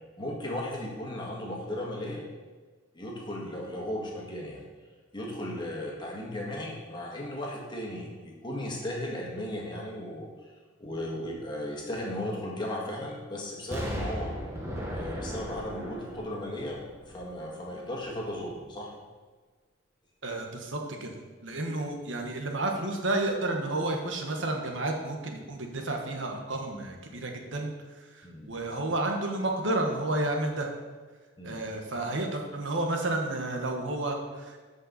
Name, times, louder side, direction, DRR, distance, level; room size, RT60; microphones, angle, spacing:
voice 1, 0.2-2.2 3.0-4.6 5.1-10.3 10.8-14.3 14.9-16.8 17.1-18.9 28.2-28.6 31.4-31.6, left 1 dB, 20° left, -2 dB, 1.8 m, -36 dB
Explosion, 13.7-17.6 18.1-18.2, equal, 15° right, 1.5 m, -37 dB
voice 2, 20.2-21.1 21.4-30.7 31.4-34.7, right 2 dB, 65° right, 2 dB, 1.3 m, -31 dB
13.0 x 5.5 x 4.1 m, 1.4 s
head